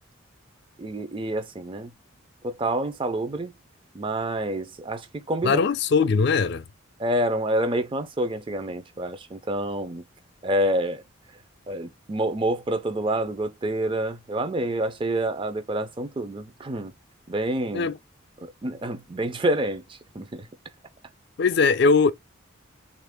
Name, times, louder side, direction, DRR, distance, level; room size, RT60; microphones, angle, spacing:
voice 1, 0.8-1.9 2.4-3.5 3.9-5.6 7.0-10.0 10.4-11.0 11.7-16.9 17.3-17.9 18.4-20.5, right 1 dB, 25° right, 0.4 m, -28 dB
voice 2, 5.4-6.6 17.7-18.0 21.4-22.1, left 4 dB, 55° left, 0.4 m, -20 dB
3.2 x 2.5 x 3.5 m
head